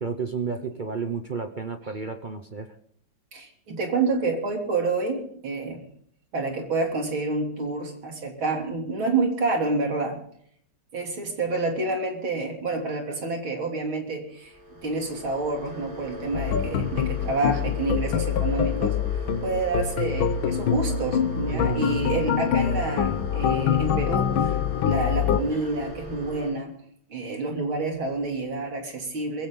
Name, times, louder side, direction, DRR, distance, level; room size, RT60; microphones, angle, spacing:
voice 1, 0.0-2.7 21.5-21.9, right 5 dB, 50° right, 7 dB, 0.5 m, -31 dB
voice 2, 3.3-5.8 6.3-10.2 10.9-14.5 14.8-19.0 19.4-24.6 24.8-26.7 27.1-29.5, right 3 dB, 80° right, 1 dB, 4.0 m, -28 dB
sound 1, 14.3-26.5, equal, 10° right, 3.8 m, -39 dB
sound 2, 16.3-25.4, left 8 dB, 85° left, 1.7 m, -25 dB
22.0 x 16.0 x 4.0 m, 0.64 s
omnidirectional pair, 2.2 m